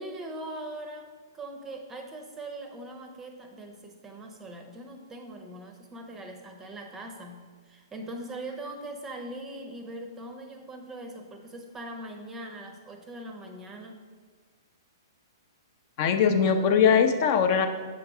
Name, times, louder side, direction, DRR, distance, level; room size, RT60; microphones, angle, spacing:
voice 1, 0.0-14.1, right 1 dB, 15° right, 4 dB, 0.6 m, -41 dB
voice 2, 16.0-17.7, left 7 dB, 45° left, 7 dB, 0.6 m, -21 dB
7.3 x 3.8 x 4.8 m, 1.5 s
hypercardioid pair, 140°, 2 cm